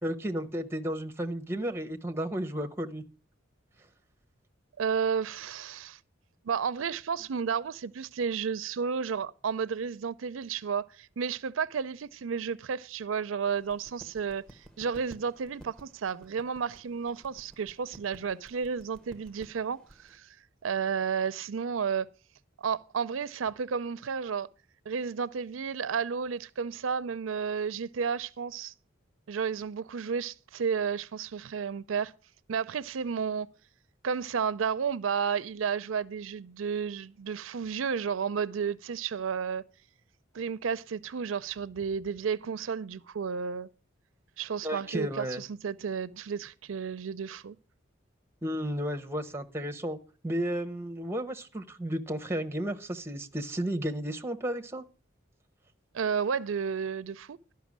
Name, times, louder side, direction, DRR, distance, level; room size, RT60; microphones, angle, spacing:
voice 1, 0.0-3.0 44.6-45.4 48.4-50.0 50.2-54.8, equal, 15° right, 0.9 m, -33 dB
voice 2, 4.8-6.0 6.4-14.4 14.8-20.3 20.6-22.1 22.6-24.5 24.9-28.7 29.3-32.1 32.5-33.5 34.0-39.6 40.3-43.7 44.4-47.6 55.9-57.4, right 6 dB, 90° right, 0.5 m, -32 dB
sound 1, 13.4-20.2, right 1 dB, 5° left, 1.1 m, -55 dB
12.0 x 5.7 x 7.3 m
head